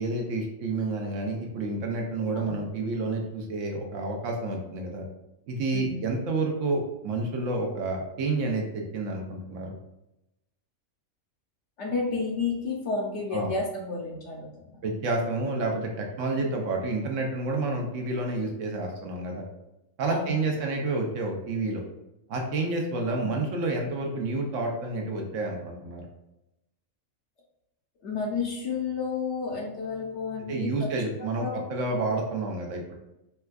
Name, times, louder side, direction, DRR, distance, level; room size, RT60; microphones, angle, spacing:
voice 1, 0.0-5.1 5.5-9.8 13.3-13.5 14.8-19.5 20.0-21.8 22.3-26.1 30.4-32.9, right 2 dB, 70° right, 1 dB, 0.9 m, -29 dB
voice 2, 11.8-14.8 20.1-20.4 28.0-30.7 31.2-31.6, left 4 dB, 65° left, -1 dB, 0.9 m, -31 dB
4.2 x 2.2 x 2.2 m, 0.90 s
omnidirectional pair, 1.4 m